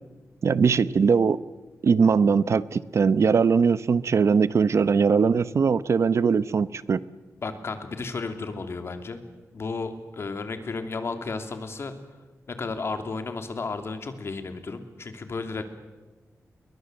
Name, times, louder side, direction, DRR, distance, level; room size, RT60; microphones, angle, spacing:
voice 1, 0.4-1.4 1.8-7.0, right 5 dB, 60° right, 16 dB, 0.9 m, -21 dB
voice 2, 7.4-9.2 9.5-11.9 12.5-15.7, left 4 dB, 50° left, 7 dB, 2.9 m, -33 dB
29.5 x 22.5 x 8.0 m, 1.2 s
wide cardioid pair, 150°, 6 cm